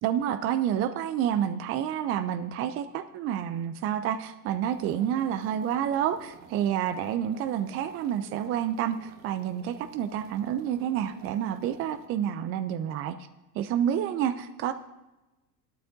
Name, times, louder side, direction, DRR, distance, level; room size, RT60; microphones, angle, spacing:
voice 1, 0.0-13.2 13.5-14.7, right 10 dB, 30° right, 11 dB, 0.4 m, -29 dB
sound 1, 4.7-12.1, right 6 dB, 60° right, 1.4 m, -52 dB
14.5 x 12.5 x 2.6 m, 1.0 s
hypercardioid pair, 85°, 50 cm